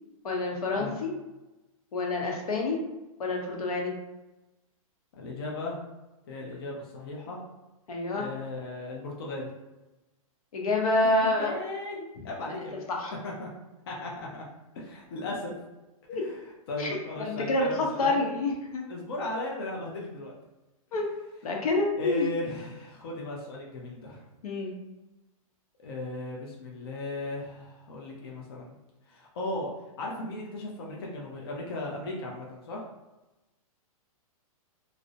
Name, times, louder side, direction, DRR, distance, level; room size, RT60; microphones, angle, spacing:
voice 1, 0.2-1.1 1.9-2.8 3.2-3.9 7.9-8.3 10.5-11.5 12.9-13.1 16.1-16.2 16.8-18.8 20.9-21.1 21.4-22.3 24.4-24.7, left 2 dB, 85° left, 0 dB, 0.7 m, -27 dB
voice 2, 5.2-5.8 6.3-7.4 8.1-9.5 11.4-12.8 13.2-13.5 13.9-14.4 14.7-15.5 16.1-16.4 16.7-18.2 18.9-20.3 21.9-24.2 25.8-28.8 29.1-32.8, left 2 dB, 45° left, -2 dB, 0.5 m, -36 dB
2.5 x 2.0 x 2.5 m, 1.0 s
hypercardioid pair, 175°, 18 cm